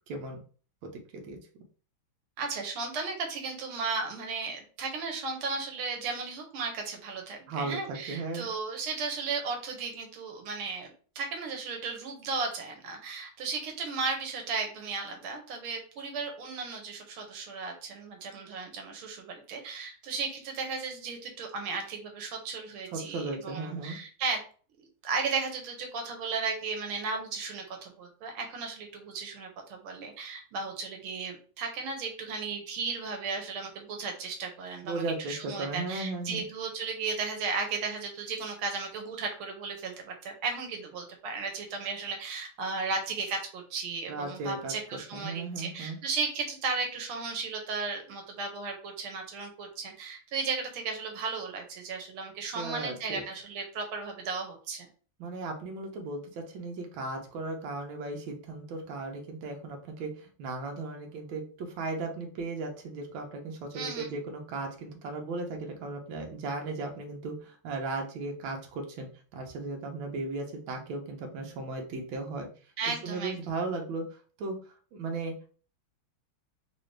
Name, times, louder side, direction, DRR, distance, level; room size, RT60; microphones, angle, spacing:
voice 1, 0.1-0.4 0.8-1.4 7.5-8.5 22.9-24.0 34.8-36.4 44.1-46.0 52.5-53.2 55.2-72.5 73.0-74.0 74.4-74.6 74.9-75.5, right 3 dB, 70° right, 2 dB, 1.5 m, -36 dB
voice 2, 2.4-24.4 24.8-54.9 63.7-64.1 72.8-73.4, right 4 dB, 90° right, 3 dB, 1.7 m, -35 dB
3.8 x 2.6 x 3.2 m, 0.40 s
omnidirectional pair, 2.3 m